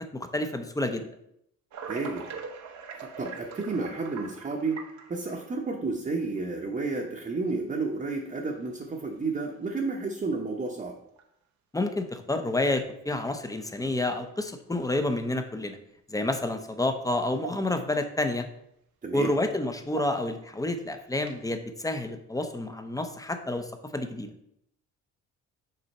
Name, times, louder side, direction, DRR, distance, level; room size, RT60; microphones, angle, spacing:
voice 1, 0.2-1.1 11.7-15.8 16.1-18.4 19.1-24.3, left 2 dB, 10° left, 7 dB, 0.7 m, -29 dB
sound 1, 1.7-5.6 6.4-6.5 7.5-7.6 8.3-8.6 9.0-9.1 9.6-9.8 11.2-11.3 14.0-14.1 14.9-15.5 16.9-17.0 17.3-18.0 18.3-18.4 19.7-20.5 21.2-21.5, right 5 dB, 70° right, 0.9 m, -42 dB
voice 2, 1.8-2.3 2.9-4.8 5.1-11.0 19.0-19.3, right 3 dB, 30° right, -1 dB, 0.9 m, -31 dB
6.7 x 4.1 x 4.2 m, 0.76 s
cardioid pair, 90°, 30 cm